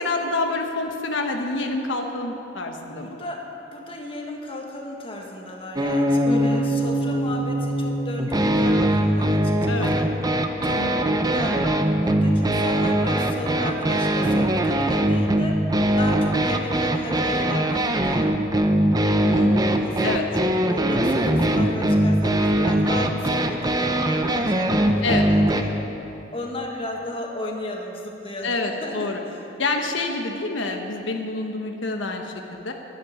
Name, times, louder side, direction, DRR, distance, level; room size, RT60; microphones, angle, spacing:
voice 1, 0.0-3.2 6.2-6.6 9.7-9.9 10.7-11.1 19.2-19.7 20.0-20.2 25.0-25.2 28.4-29.2 29.6-32.7, left 2 dB, 80° left, 3 dB, 1.2 m, -27 dB
voice 2, 3.0-10.1 10.6-10.8 11.2-11.7 12.0-15.7 16.0-18.3 19.5-25.8 26.3-29.5, left 1 dB, 30° left, 0 dB, 1.6 m, -34 dB
sound 1, 5.8-25.6, right 1 dB, 20° right, 0.8 m, -21 dB
12.0 x 11.5 x 8.8 m, 2.9 s
head